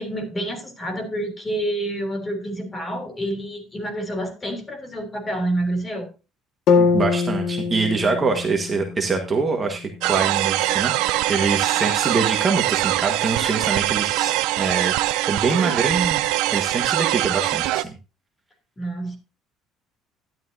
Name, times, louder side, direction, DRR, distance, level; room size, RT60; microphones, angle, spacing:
voice 1, 0.0-6.1 18.8-19.2, right 1 dB, 15° left, 4 dB, 3.3 m, -28 dB
sound 1, 6.7-10.7, left 5 dB, 55° left, 1.9 m, -24 dB
voice 2, 6.8-14.9 15.2-16.2 16.5-18.0, right 4 dB, 25° right, 4 dB, 1.5 m, -24 dB
sound 2, 10.0-17.8, right 16 dB, 85° right, 0.6 m, -22 dB
12.5 x 11.0 x 2.7 m, 0.31 s
cardioid pair, 140°, 0 cm